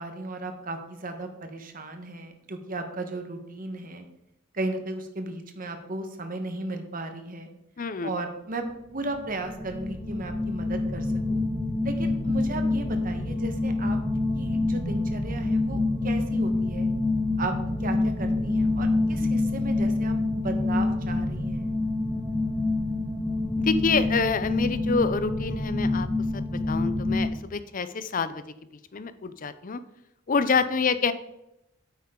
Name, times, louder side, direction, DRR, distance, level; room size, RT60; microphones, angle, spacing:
voice 1, 0.0-4.0 4.5-7.5 8.0-11.4 11.8-14.0 14.3-16.9 17.4-17.5 17.8-21.7, right 2 dB, 45° right, 6 dB, 1.3 m, -35 dB
voice 2, 7.8-8.1 23.6-26.1 26.3-28.4 28.9-29.8 30.3-31.1, left 4 dB, 40° left, 13 dB, 0.6 m, -27 dB
sound 1, 9.1-27.3, left 2 dB, 5° right, 1.5 m, -27 dB
9.1 x 8.9 x 3.8 m, 0.86 s
head